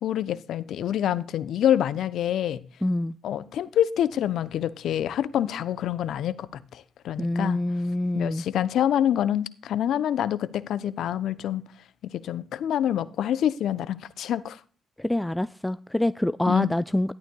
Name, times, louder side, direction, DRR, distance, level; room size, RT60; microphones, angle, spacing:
voice 1, 0.0-2.6 3.2-7.6 8.1-11.6 12.1-14.6 16.5-16.7, left 10 dB, 70° left, 0.6 m, -26 dB
voice 2, 2.8-3.1 7.2-8.4 15.0-17.1, left 1 dB, 10° left, 0.3 m, -26 dB
13.5 x 11.5 x 2.2 m
hypercardioid pair, 40°, 0 cm